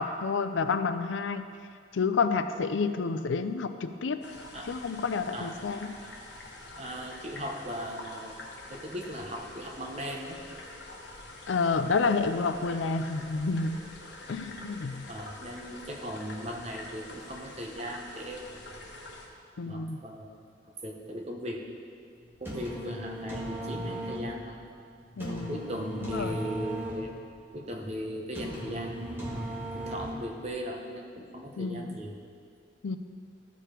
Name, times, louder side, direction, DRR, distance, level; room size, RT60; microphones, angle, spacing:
voice 1, 0.0-1.4 1.9-4.2 4.7-6.0 11.5-13.8 14.3-15.0 19.6-20.0 25.2-25.5 26.1-26.4 31.6-31.9 32.8-33.0, left 4 dB, 90° left, 10 dB, 0.5 m, -29 dB
sound 1, 4.2-19.3, left 2 dB, 65° left, 1.2 m, -46 dB
voice 2, 6.7-8.4 8.7-10.4 12.7-13.0 15.1-18.6 19.6-20.4 20.8-21.6 22.4-24.6 25.3-27.2 27.5-29.4 29.7-32.1, equal, 35° right, 0 dB, 1.0 m, -38 dB
sound 2, 22.2-30.5, right 1 dB, 10° right, 1.7 m, -38 dB
13.5 x 5.0 x 4.5 m, 2.3 s
head